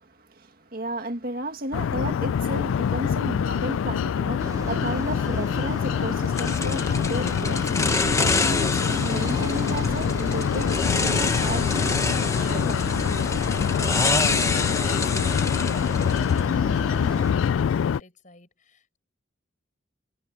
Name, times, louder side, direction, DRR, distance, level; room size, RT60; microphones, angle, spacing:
voice 1, 0.1-12.9, right 1 dB, 50° right, 2.0 m, -33 dB
sound 1, 1.7-18.0, left 7 dB, 85° left, 0.3 m, -25 dB
sound 2, 4.4-17.3, right 1 dB, 20° right, 2.1 m, -36 dB
sound 3, 6.4-16.5, left 3 dB, 15° left, 1.1 m, -27 dB
voice 2, 14.3-19.0, left 2 dB, 40° left, 5.0 m, -47 dB
head